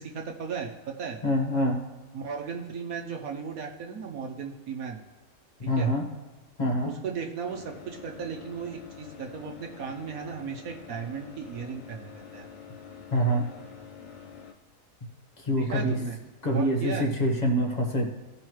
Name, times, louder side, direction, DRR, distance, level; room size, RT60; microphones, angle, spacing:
voice 1, 0.0-1.2 2.1-5.0 5.8-5.9 6.8-12.5 15.6-16.1 16.5-17.1, right 6 dB, 70° right, 2 dB, 1.3 m, -36 dB
voice 2, 1.2-1.8 5.6-6.0 6.6-6.9 13.1-13.5 15.4-16.0 16.4-18.1, equal, 30° left, 1 dB, 1.3 m, -25 dB
sound 1, 7.4-14.5, left 6 dB, 60° left, 1.2 m, -47 dB
16.0 x 5.5 x 3.1 m, 1.2 s
omnidirectional pair, 1.6 m